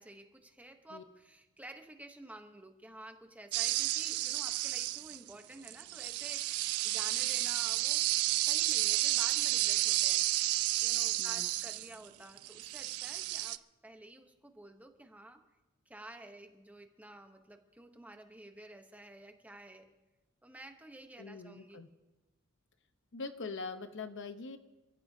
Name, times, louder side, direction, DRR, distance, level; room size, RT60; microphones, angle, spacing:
voice 1, 0.0-8.0 8.3-10.3 10.8-15.4 15.9-19.9 20.4-21.8, right 1 dB, 5° right, 6 dB, 0.9 m, -51 dB
sound 1, 3.5-5.3 5.6-12.1 12.4-13.6, right 16 dB, 80° right, 0.4 m, -31 dB
voice 2, 21.2-21.9 23.1-24.6, left 4 dB, 60° left, 9 dB, 0.9 m, -43 dB
27.0 x 14.0 x 2.7 m, 1.1 s
head